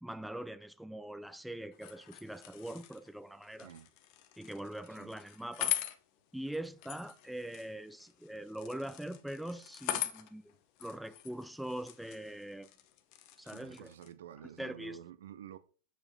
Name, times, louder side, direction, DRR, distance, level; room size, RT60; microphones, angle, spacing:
voice 1, 0.0-3.7 4.4-5.7 6.3-10.5 10.8-12.7 13.4-13.9 14.6-15.0, right 1 dB, ahead, 0.3 m, -42 dB
sound 1, 1.7-14.1, left 12 dB, 50° left, 0.8 m, -43 dB
voice 2, 13.4-15.6, right 10 dB, 70° right, 0.6 m, -50 dB
7.0 x 5.1 x 3.3 m
hypercardioid pair, 100°, 0 cm